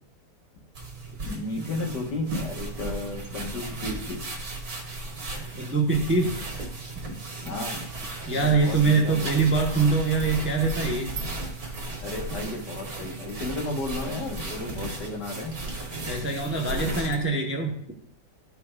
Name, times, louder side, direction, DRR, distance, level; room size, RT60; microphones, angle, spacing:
sound 1, 0.7-17.2, right 2 dB, 60° right, 2.0 m, -35 dB
voice 1, 1.2-4.2 7.4-7.9 8.3-9.3 12.0-15.6 16.7-17.2, left 2 dB, 80° left, 1 dB, 2.0 m, -33 dB
voice 2, 5.6-6.4 8.3-11.2 16.1-17.8, right 4 dB, 10° right, 1 dB, 0.6 m, -24 dB
14.0 x 5.7 x 2.4 m, 0.65 s
omnidirectional pair, 1.8 m